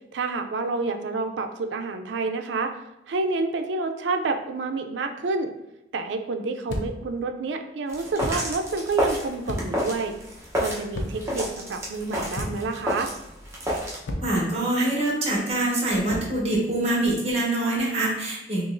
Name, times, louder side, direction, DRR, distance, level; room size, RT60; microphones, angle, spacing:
voice 1, 0.1-2.8 3.1-5.5 5.9-10.1 10.6-13.1, right 3 dB, 80° right, 6 dB, 0.4 m, -28 dB
sound 1, 6.7-7.1 8.2-8.5 9.5-9.9 10.9-11.4 12.3-12.8 14.1-14.4 16.1-16.4, left 1 dB, 80° left, 0.5 m, -32 dB
sound 2, 7.9-14.0, equal, 15° right, 0.8 m, -30 dB
voice 2, 14.2-18.6, right 1 dB, 35° right, -4 dB, 1.2 m, -24 dB
3.8 x 3.0 x 2.5 m, 0.87 s
head